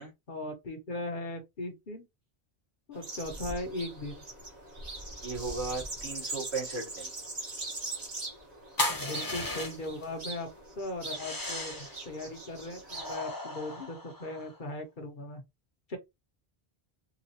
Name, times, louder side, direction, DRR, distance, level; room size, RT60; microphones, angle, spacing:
voice 1, 0.3-2.1 2.9-4.2 8.9-10.5 10.8-15.4 15.9-16.0, left 1 dB, 50° left, 1.1 m, -38 dB
sound 1, 2.9-13.2, right 2 dB, 40° right, 1.2 m, -41 dB
voice 2, 5.2-7.1, right 4 dB, 80° right, 1.8 m, -36 dB
sound 2, 8.8-10.0 11.1-12.0 12.9-14.6, left 1 dB, 20° left, 0.9 m, -35 dB
3.9 x 2.5 x 2.8 m
omnidirectional pair, 1.1 m